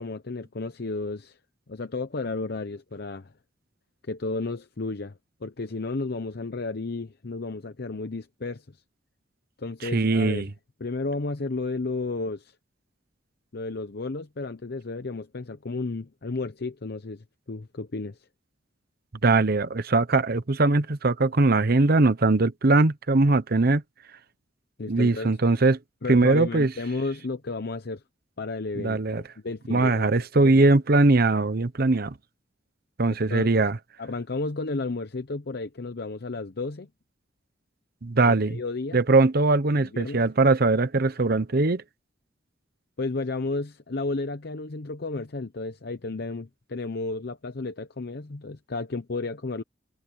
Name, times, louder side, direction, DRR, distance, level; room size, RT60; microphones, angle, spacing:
voice 1, 0.0-1.4 1.7-3.3 4.1-8.8 9.6-10.5 10.8-12.5 13.5-18.2 24.8-25.3 26.0-28.0 28.4-30.7 33.3-33.7 34.0-36.9 38.2-39.0 39.8-40.2 43.0-49.6, left 3 dB, 60° left, 0.8 m, -33 dB
voice 2, 9.8-10.5 19.2-23.8 24.9-25.8 26.1-26.7 28.8-29.2 29.7-32.1 33.0-33.8 38.0-38.6 38.9-41.8, right 3 dB, 55° right, 0.9 m, -21 dB
head